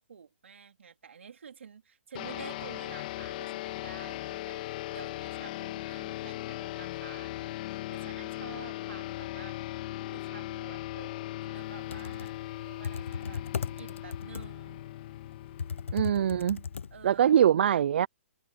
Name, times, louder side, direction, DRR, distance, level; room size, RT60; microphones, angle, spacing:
voice 1, 0.0-9.6 10.1-13.4 13.7-14.8 16.9-17.5, right 7 dB, 75° right, 4.0 m, -50 dB
sound 1, 2.1-17.0, left 16 dB, 40° left, 2.5 m, -39 dB
Computer keyboard, 11.7-17.3, left 6 dB, 80° left, 0.8 m, -38 dB
voice 2, 15.9-16.6 17.0-18.1, right 9 dB, 60° right, 0.7 m, -23 dB
hypercardioid pair, 145°, 7 cm